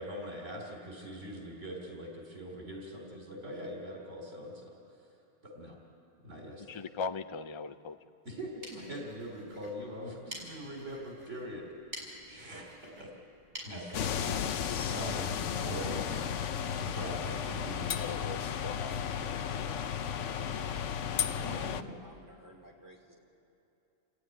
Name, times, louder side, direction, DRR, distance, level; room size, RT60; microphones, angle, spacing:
voice 1, 0.0-5.1 5.4-5.8 6.2-6.6 8.3-11.7 12.3-13.1 13.6-14.2 14.7-16.3 16.7-18.4 21.4-21.9, equal, 65° right, 0 dB, 3.6 m, -42 dB
voice 2, 6.7-8.0 18.0-19.8, left 5 dB, 35° left, 10 dB, 0.5 m, -40 dB
sound 1, 8.4-15.8, equal, 45° right, 6.4 m, -50 dB
sound 2, 13.9-21.8, left 8 dB, 70° left, 1.1 m, -34 dB
voice 3, 21.2-23.2, equal, 15° right, -1 dB, 3.4 m, -55 dB
29.0 x 15.0 x 9.6 m, 2.8 s
omnidirectional pair, 1.4 m